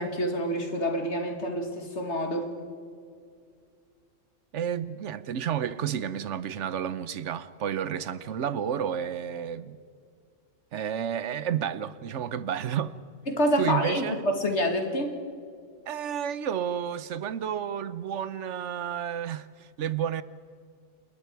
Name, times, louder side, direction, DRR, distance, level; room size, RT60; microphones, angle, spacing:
voice 1, 0.0-2.5 13.3-15.2, equal, 60° left, 2.6 m, -27 dB
voice 2, 4.5-9.8 10.7-13.0 13.6-14.2 15.9-20.2, right 9 dB, 65° right, 1.0 m, -31 dB
28.0 x 21.5 x 4.7 m
omnidirectional pair, 1.3 m